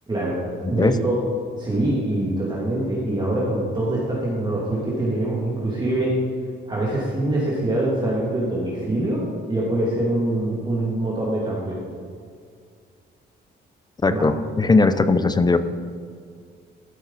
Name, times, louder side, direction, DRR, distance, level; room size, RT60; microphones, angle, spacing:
voice 1, 0.1-0.4 0.7-1.2 1.6-6.1 6.7-9.2 9.5-11.8 14.1-14.3, right 1 dB, 20° right, -6 dB, 2.3 m, -24 dB
voice 2, 0.6-1.0 14.0-15.6, left 3 dB, 20° left, 11 dB, 0.5 m, -19 dB
13.0 x 6.0 x 4.1 m, 2.1 s
cardioid pair, 90°, 20 cm